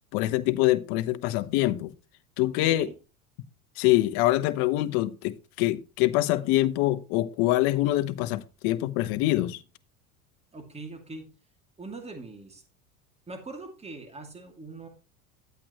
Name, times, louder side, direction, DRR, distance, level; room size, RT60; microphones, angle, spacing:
voice 1, 0.1-1.9 2.4-2.9 3.8-9.6, left 16 dB, 60° left, 1.0 m, -25 dB
voice 2, 2.6-2.9 10.5-11.3 11.8-12.6 13.3-14.9, right 3 dB, 15° right, 2.3 m, -41 dB
10.5 x 8.6 x 3.0 m
hypercardioid pair, 95°, 42 cm